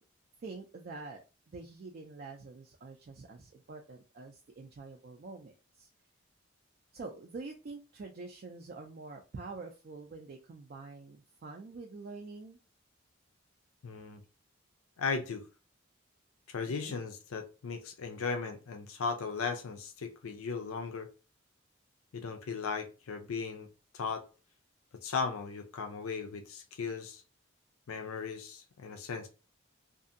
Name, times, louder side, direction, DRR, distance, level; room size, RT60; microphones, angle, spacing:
voice 1, 0.4-1.2 1.5-5.9 6.9-12.6 16.7-17.0, right 3 dB, 45° right, 2 dB, 0.3 m, -46 dB
voice 2, 13.8-14.2 15.0-15.5 16.5-21.1 22.1-23.7 23.9-24.2 25.0-27.2 27.9-29.3, left 5 dB, 85° left, 5 dB, 0.4 m, -37 dB
2.7 x 2.4 x 2.5 m, 0.33 s
head